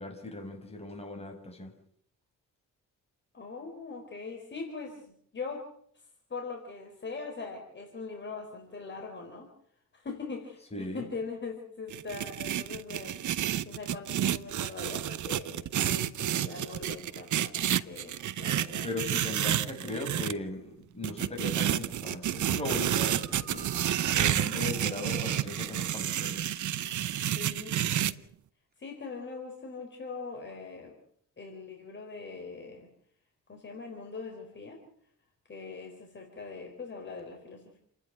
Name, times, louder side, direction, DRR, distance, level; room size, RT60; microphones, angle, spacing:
voice 1, 0.0-1.7 10.7-11.1 18.8-23.7 24.1-26.4, left 2 dB, 20° left, 2 dB, 5.8 m, -38 dB
voice 2, 3.3-5.6 6.3-9.5 9.9-18.9 19.8-20.0 27.3-28.2 28.8-31.0 31.4-32.9 33.5-34.8 35.5-37.8, left 4 dB, 35° left, 1 dB, 4.4 m, -42 dB
sound 1, 11.9-20.3 21.0-28.1, right 11 dB, 70° right, 0.9 m, -30 dB
sound 2, 22.4-25.4 28.7-28.8 30.9-31.0 37.2-37.3, right 1 dB, 30° right, 6.7 m, -51 dB
29.5 x 10.5 x 9.2 m, 0.66 s
cardioid pair, 115°, 31 cm